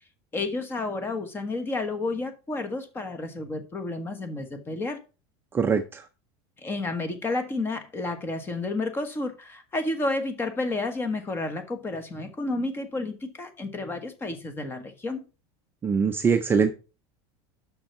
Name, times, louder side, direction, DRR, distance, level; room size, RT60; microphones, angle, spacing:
voice 1, 0.3-5.0 6.6-15.2, left 2 dB, 15° left, 1.3 m, -31 dB
voice 2, 5.5-6.0 15.8-16.7, right 6 dB, 15° right, 0.6 m, -23 dB
6.4 x 6.1 x 5.8 m
supercardioid pair, 155°, 13 cm